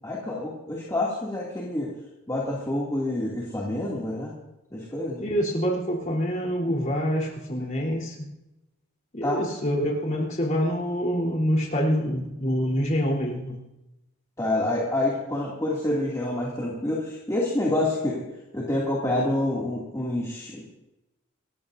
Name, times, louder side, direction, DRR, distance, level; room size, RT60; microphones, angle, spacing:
voice 1, 0.0-1.9 2.3-4.3 4.7-5.2 9.2-9.4 14.4-18.2 18.5-20.7, left 1 dB, 15° left, -5 dB, 2.6 m, -27 dB
voice 2, 5.2-8.3 9.1-13.6, equal, 35° left, -2 dB, 3.8 m, -26 dB
28.0 x 14.5 x 2.7 m, 0.95 s
head